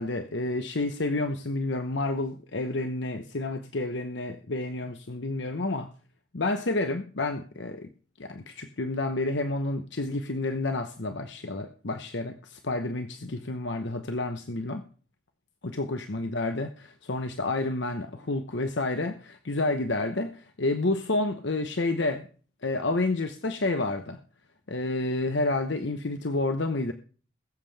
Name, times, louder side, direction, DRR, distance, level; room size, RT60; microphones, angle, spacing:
voice 1, 0.0-5.9 6.3-7.9 8.2-14.8 15.6-22.3 22.6-24.2 24.7-26.9, left 2 dB, 65° left, 7 dB, 1.0 m, -29 dB
21.5 x 7.5 x 3.4 m, 0.40 s
head